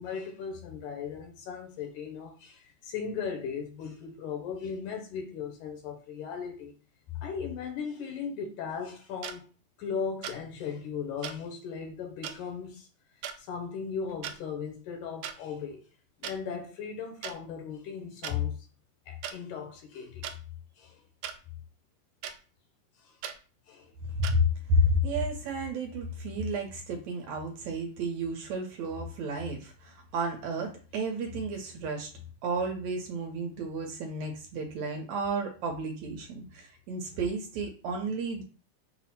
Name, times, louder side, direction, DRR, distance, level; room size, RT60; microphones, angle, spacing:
voice 1, 0.0-6.7 7.1-9.5 9.8-12.9 13.4-15.9 16.2-18.6 19.1-20.3 20.8-21.0 23.0-23.2 23.7-23.9, left 6 dB, 85° left, 2.3 m, -37 dB
sound 1, 9.2-9.4 10.2-10.4 11.2-11.4 12.2-12.4 13.2-13.4 14.1-14.4 15.2-15.4 16.2-16.4 17.2-17.4 18.2-18.4 19.2-19.4 20.2-20.4 21.2-21.4 22.2-22.4 23.2-23.4 24.2-24.4, right 9 dB, 90° right, 1.4 m, -37 dB
voice 2, 24.2-32.1 32.4-38.4, equal, 70° right, 1.9 m, -31 dB
5.9 x 2.0 x 4.2 m
omnidirectional pair, 3.5 m